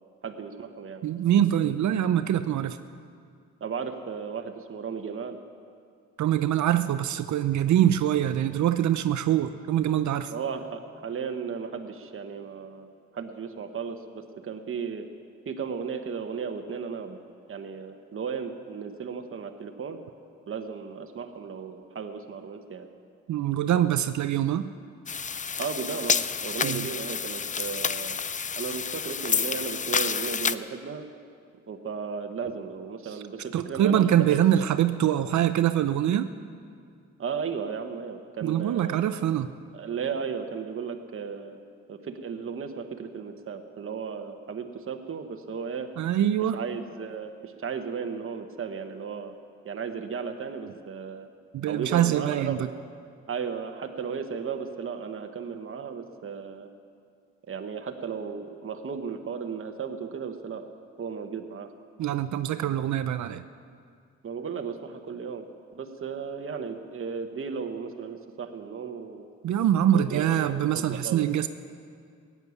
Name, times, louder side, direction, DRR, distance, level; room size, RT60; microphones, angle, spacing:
voice 1, 0.2-1.0 3.6-5.4 10.3-12.9 13.1-15.1 15.4-17.2 17.5-20.0 20.5-22.9 25.6-28.2 28.6-31.0 31.7-34.7 37.2-39.2 39.7-41.6 41.9-45.9 46.5-49.3 49.6-51.3 51.7-52.7 53.3-56.7 57.5-60.6 61.0-61.7 64.2-65.5 65.7-69.3 69.9-71.3, right 6 dB, 45° right, 5 dB, 1.1 m, -35 dB
voice 2, 1.0-2.8 6.2-10.3 23.3-24.7 26.6-26.9 33.0-33.2 33.5-36.3 38.4-39.5 46.0-46.6 51.5-52.6 62.0-63.4 69.4-71.5, right 11 dB, 70° right, 11 dB, 0.6 m, -24 dB
sound 1, 25.1-30.6, left 6 dB, 25° left, 0.4 m, -29 dB
16.5 x 9.6 x 7.1 m, 2.2 s
cardioid pair, 85°, 30 cm